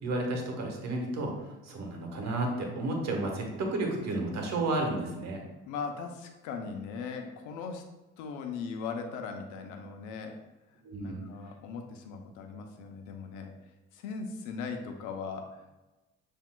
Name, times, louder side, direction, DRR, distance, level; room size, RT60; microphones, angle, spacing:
voice 1, 0.0-5.4 10.8-11.2, right 2 dB, 60° right, 1 dB, 1.2 m, -32 dB
voice 2, 5.7-7.9 8.2-10.4 11.0-13.5 13.9-15.7, left 5 dB, 80° left, 4 dB, 0.7 m, -39 dB
7.1 x 2.7 x 2.2 m, 1.1 s
supercardioid pair, 80°, 30 cm